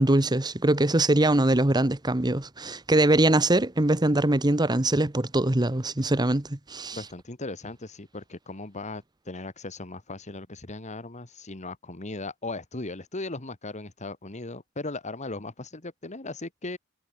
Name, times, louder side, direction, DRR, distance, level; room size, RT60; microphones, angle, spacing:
voice 1, 0.0-7.0, right 1 dB, 20° right, 1.2 m, -22 dB
voice 2, 6.9-16.8, left 2 dB, 35° left, 2.0 m, -37 dB
head